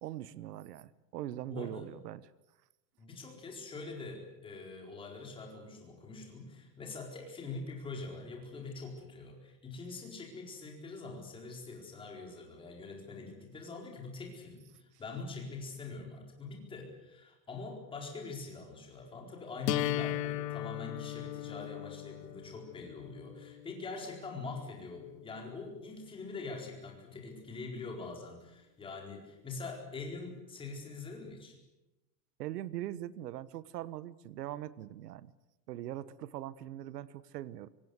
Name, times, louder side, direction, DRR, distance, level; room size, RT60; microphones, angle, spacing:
voice 1, 0.0-2.2 32.4-35.3 35.7-37.7, right 13 dB, 70° right, 18 dB, 1.1 m, -41 dB
voice 2, 1.5-1.9 3.0-31.6, left 3 dB, 10° left, 1 dB, 4.4 m, -44 dB
sound 1, 19.7-25.6, left 14 dB, 75° left, 1.4 m, -38 dB
25.0 x 24.0 x 8.1 m, 1.0 s
supercardioid pair, 180°, 49 cm